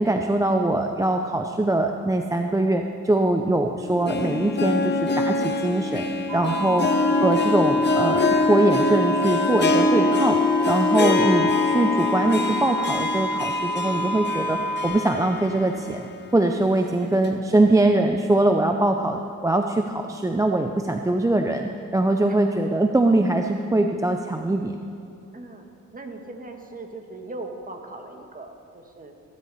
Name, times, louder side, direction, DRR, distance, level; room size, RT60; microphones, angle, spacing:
voice 1, 0.0-6.1 6.3-6.9 7.2-10.4 10.7-16.1 16.3-24.8, right 2 dB, 10° right, 4 dB, 0.6 m, -22 dB
Harp, 3.8-15.9 16.3-16.4 17.2-17.3, left 3 dB, 35° left, 1.1 m, -24 dB
sound 1, 6.3-14.9, right 1 dB, 80° right, 3.6 m, -28 dB
voice 2, 25.3-25.7 25.9-29.1, right 2 dB, 30° right, 4 dB, 1.7 m, -39 dB
16.0 x 13.5 x 4.2 m, 2.5 s
cardioid pair, 90°, 30 cm